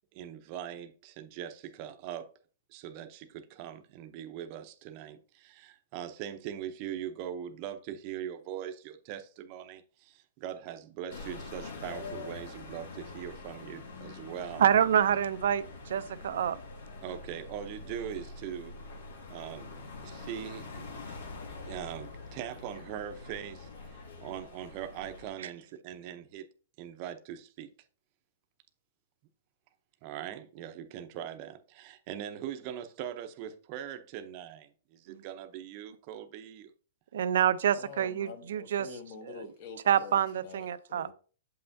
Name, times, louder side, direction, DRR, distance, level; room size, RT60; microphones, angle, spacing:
voice 1, 0.1-2.3 2.7-14.7 17.0-18.8 19.3-19.7 20.0-21.2 21.6-26.5 26.8-27.7 30.0-36.7, right 10 dB, 30° right, 0.6 m, -41 dB
sound 1, 11.1-25.3, left 3 dB, 85° left, 2.4 m, -45 dB
voice 2, 14.6-16.6 25.4-25.5 35.1-35.2 37.1-38.9 39.2-39.5 39.9-41.1, right 9 dB, 70° right, 0.5 m, -27 dB
voice 3, 37.7-41.1, left 5 dB, 40° left, 1.0 m, -46 dB
7.6 x 5.6 x 2.7 m
hypercardioid pair, 170°, 0 cm